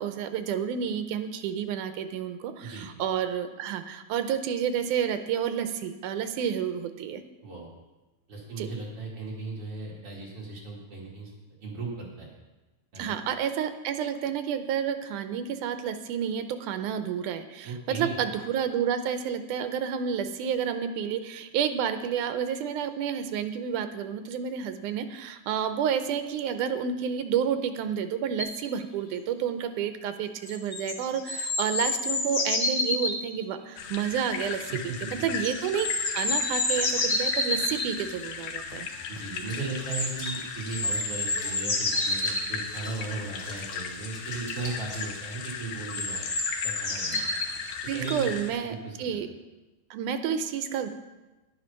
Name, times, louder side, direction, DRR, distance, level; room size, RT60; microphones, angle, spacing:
voice 1, 0.0-7.2 8.6-8.7 13.0-34.6 35.0-38.9 47.1-47.3 47.6-49.3 49.9-50.9, right 8 dB, 85° right, 9 dB, 2.2 m, -30 dB
voice 2, 7.4-7.7 8.3-11.3 11.6-12.3 12.9-13.1 17.6-18.2 34.7-35.6 39.1-46.2 46.6-47.4 47.9-48.3 48.8-49.2, right 4 dB, 45° right, -4 dB, 3.2 m, -37 dB
sound 1, 28.4-28.5 30.5-33.2 35.4-37.9 39.9-40.3 40.7-42.9 44.5-44.6 44.9-45.0 45.9-47.5 48.0-48.1, left 2 dB, 55° left, 0.8 m, -29 dB
sound 2, 33.8-48.5, left 6 dB, 85° left, 2.6 m, -37 dB
Water / Bathtub (filling or washing), 39.5-45.3, left 2 dB, 35° left, 1.5 m, -45 dB
10.5 x 9.7 x 5.6 m, 1.1 s
omnidirectional pair, 3.7 m